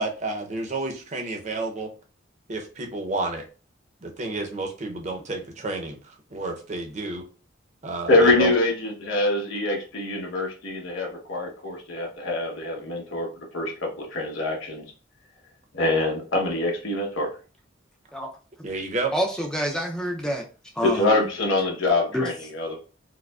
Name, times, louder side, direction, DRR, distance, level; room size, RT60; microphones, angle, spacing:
voice 1, 0.0-1.9 2.5-3.4 4.0-6.0 6.3-7.2 7.8-8.5 18.6-19.1, right 3 dB, 40° right, 3 dB, 0.6 m, -30 dB
voice 2, 8.1-13.3 13.5-14.8 15.7-17.3 20.8-22.8, left 2 dB, 85° left, 0 dB, 1.0 m, -24 dB
voice 3, 19.1-20.4 20.7-21.3 22.1-22.3, equal, 5° left, 1 dB, 0.4 m, -27 dB
4.6 x 2.1 x 2.3 m, 0.36 s
head